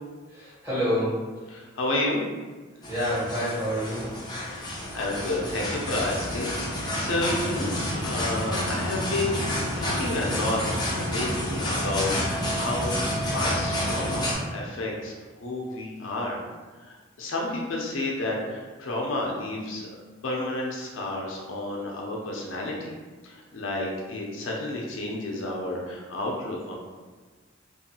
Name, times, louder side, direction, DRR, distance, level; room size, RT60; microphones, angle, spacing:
voice 1, 0.3-1.3 2.9-4.2, equal, 10° right, -11 dB, 1.4 m, -28 dB
voice 2, 1.5-2.2 4.4-12.9 13.3-15.1 15.4-16.4 16.8-19.9 20.2-22.9 23.2-26.7, left 2 dB, 85° left, -2 dB, 0.5 m, -31 dB
sound 1, 2.8-14.3, left 1 dB, 20° left, 0.5 m, -29 dB
2.6 x 2.3 x 2.7 m, 1.4 s
head